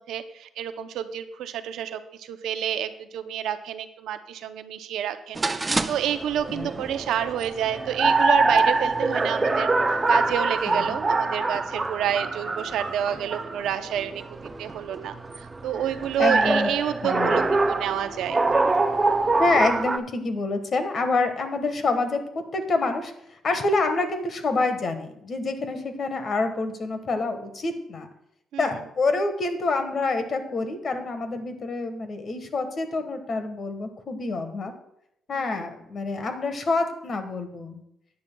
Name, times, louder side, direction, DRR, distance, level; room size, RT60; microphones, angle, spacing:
voice 1, 0.0-9.7 10.1-14.2 14.6-18.4 28.5-28.8 35.3-35.7, right 10 dB, 80° right, 10 dB, 0.6 m, -29 dB
sound 1, 5.4-20.0, right 3 dB, 25° right, 0.5 m, -25 dB
voice 2, 6.5-6.8 10.7-11.0 16.2-16.7 17.0-17.4 19.4-23.1 23.4-28.1 28.6-34.7 35.3-37.8, left 3 dB, 45° left, 8 dB, 1.4 m, -27 dB
14.0 x 9.6 x 2.3 m, 0.78 s
cardioid pair, 90°, 0 cm